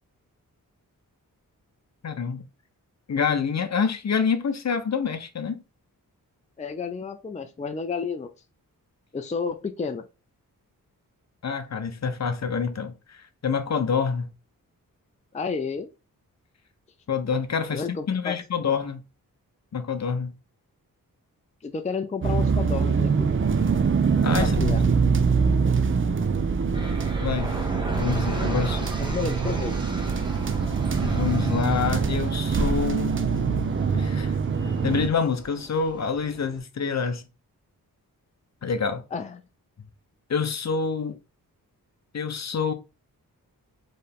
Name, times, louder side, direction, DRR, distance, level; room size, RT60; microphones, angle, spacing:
voice 1, 2.0-2.4 3.1-5.6 11.4-14.3 17.1-19.0 19.7-20.3 24.2-25.1 27.2-27.5 28.0-28.9 31.0-33.2 33.9-37.3 38.6-39.0 40.3-41.2 42.1-42.7, left 6 dB, 50° left, 0.7 m, -27 dB
voice 2, 6.6-8.3 9.1-10.0 15.3-15.9 17.7-18.3 21.6-23.3 24.4-24.8 29.0-29.8 39.1-39.4, left 5 dB, 20° left, 0.5 m, -31 dB
sound 1, 22.2-35.1, right 5 dB, 35° right, 0.6 m, -24 dB
sound 2, 26.7-36.6, right 1 dB, 15° right, 1.1 m, -37 dB
4.5 x 3.2 x 3.4 m
wide cardioid pair, 95°, 35 cm